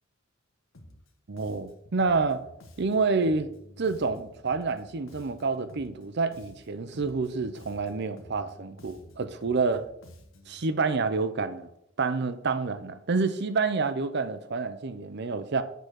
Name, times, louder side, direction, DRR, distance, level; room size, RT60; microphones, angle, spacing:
Bass guitar, 0.7-1.1 1.4-6.0 6.3-10.6, left 1 dB, 80° left, 1.2 m, -52 dB
voice 1, 1.3-2.4 2.8-3.5 3.8-9.9 10.5-11.7 12.0-15.6, right 4 dB, 60° right, 11 dB, 0.7 m, -28 dB
8.6 x 4.0 x 6.4 m, 0.76 s
head